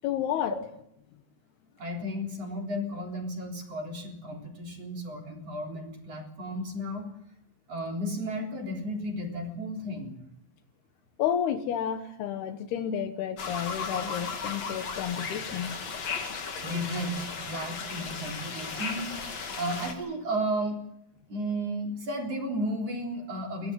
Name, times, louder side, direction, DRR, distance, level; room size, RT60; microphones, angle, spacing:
voice 1, 0.0-0.5 11.2-15.8, left 9 dB, 80° left, 3.3 m, -31 dB
voice 2, 1.8-7.1 7.7-10.1 16.6-19.1 19.5-20.8 21.3-23.7, equal, 40° right, 4.8 m, -33 dB
sound 1, 13.4-19.9, left 5 dB, 45° left, 3.3 m, -36 dB
23.0 x 17.5 x 9.3 m
omnidirectional pair, 4.6 m